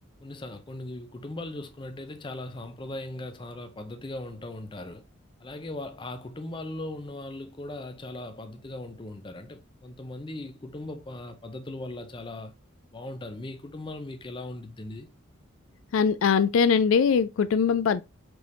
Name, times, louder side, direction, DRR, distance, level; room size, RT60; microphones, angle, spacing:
voice 1, 0.2-5.0 5.4-12.5 12.9-15.1, left 2 dB, 25° left, 0.5 m, -39 dB
voice 2, 15.9-18.0, left 6 dB, 75° left, 0.3 m, -22 dB
4.5 x 3.4 x 2.5 m
head